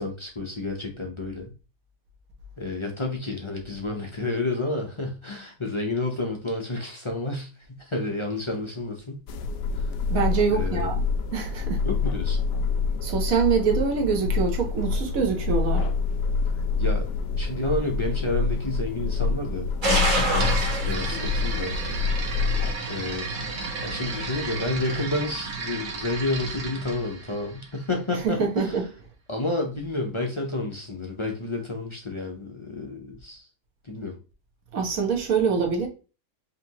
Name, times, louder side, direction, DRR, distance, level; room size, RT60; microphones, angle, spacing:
voice 1, 0.0-1.5 2.6-9.2 9.7-9.9 10.5-10.9 11.8-12.4 16.8-17.1 17.4-22.0 22.9-23.3 23.8-28.8 29.3-33.5 33.8-34.2, left 2 dB, 35° left, 0.4 m, -30 dB
sound 1, 9.3-22.7, left 4 dB, 90° left, 1.2 m, -27 dB
voice 2, 10.1-11.0 11.3-11.8 13.0-15.9 28.2-28.8 34.7-35.9, right 6 dB, 60° right, 1.4 m, -24 dB
sound 2, 19.8-25.0, right 1 dB, 30° right, 1.3 m, -30 dB
sound 3, 20.4-28.2, right 4 dB, 75° right, 1.6 m, -34 dB
5.0 x 3.0 x 2.9 m
omnidirectional pair, 1.7 m